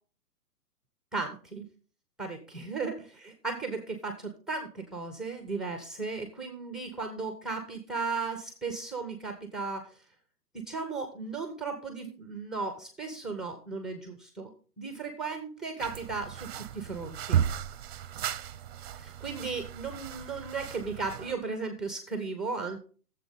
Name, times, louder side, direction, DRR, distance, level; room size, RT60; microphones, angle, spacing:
voice 1, 1.1-1.6 2.2-9.9 10.5-14.5 14.8-17.4 19.0-22.8, right 4 dB, ahead, 6 dB, 0.9 m, -36 dB
sound 1, 15.8-21.3, right 10 dB, 40° right, 0.7 m, -34 dB
15.0 x 7.7 x 4.0 m, 0.39 s
hypercardioid pair, 150°, 47 cm